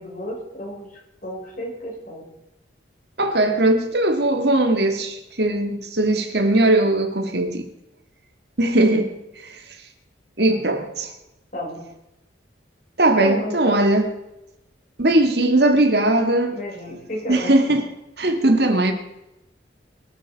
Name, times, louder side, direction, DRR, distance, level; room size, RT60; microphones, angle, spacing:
voice 1, 0.0-2.3 10.5-10.6 11.5-11.8 13.2-13.8 16.5-17.5, left 1 dB, 45° left, 5.8 m, -31 dB
voice 2, 3.2-7.7 8.6-9.1 9.4-9.6 10.4-11.1 13.0-14.1 15.0-16.6 17.3-17.9 18.2-18.9, right 1 dB, 60° right, 1.8 m, -19 dB
23.5 x 8.2 x 5.2 m
head